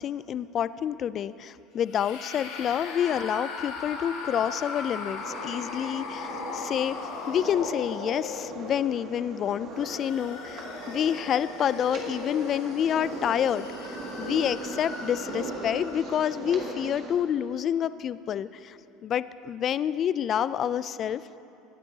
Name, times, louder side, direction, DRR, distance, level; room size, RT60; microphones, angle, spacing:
voice 1, 0.0-7.0 7.3-21.4, left 9 dB, 45° left, 16 dB, 0.3 m, -28 dB
sound 1, 1.8-8.9 9.6-16.1, left 4 dB, 80° left, 1.7 m, -39 dB
sound 2, 5.2-17.1, right 2 dB, 55° right, 2.2 m, -39 dB
20.5 x 9.9 x 2.8 m, 2.7 s
supercardioid pair, 95°, 0 cm